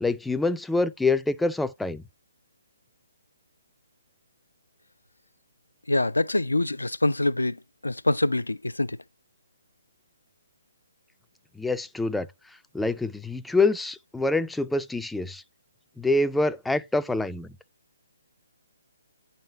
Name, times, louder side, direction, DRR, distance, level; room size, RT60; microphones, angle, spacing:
voice 1, 0.0-2.0 11.6-12.3 12.7-15.4 16.0-17.5, left 2 dB, 5° left, 0.3 m, -26 dB
voice 2, 5.9-9.0, left 2 dB, 85° left, 0.4 m, -25 dB
8.9 x 5.4 x 2.8 m
figure-of-eight pair, 135°, 0 cm